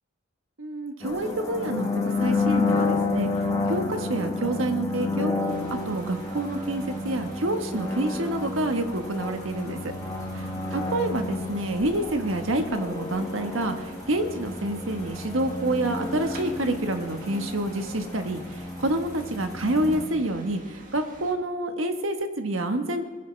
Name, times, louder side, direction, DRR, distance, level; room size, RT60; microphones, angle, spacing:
voice 1, 0.6-1.9 2.2-3.3 3.7-5.3 5.7-9.9 10.4-23.1, right 1 dB, 90° right, 6 dB, 1.3 m, -28 dB
sound 1, 1.0-20.0, left 3 dB, 15° left, 1.7 m, -30 dB
sound 2, 5.5-21.3, right 1 dB, 45° right, 1.8 m, -48 dB
21.5 x 10.0 x 3.3 m, 1.4 s
head